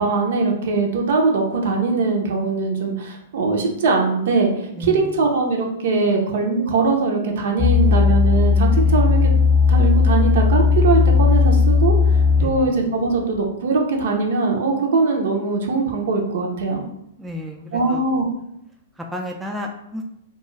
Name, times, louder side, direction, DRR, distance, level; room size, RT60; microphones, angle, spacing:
voice 1, 0.0-9.3 9.7-11.9 12.4-16.8 17.7-18.3, right 4 dB, 65° right, 1 dB, 0.6 m, -21 dB
voice 2, 4.8-5.2 8.8-9.1 12.4-12.7 17.2-18.1 19.0-20.0, left 1 dB, 5° right, 0 dB, 0.3 m, -32 dB
sound 1, 7.6-12.7 13.3-13.4, left 5 dB, 25° left, 0.7 m, -16 dB
2.3 x 2.3 x 3.1 m, 0.79 s
hypercardioid pair, 120°, 0 cm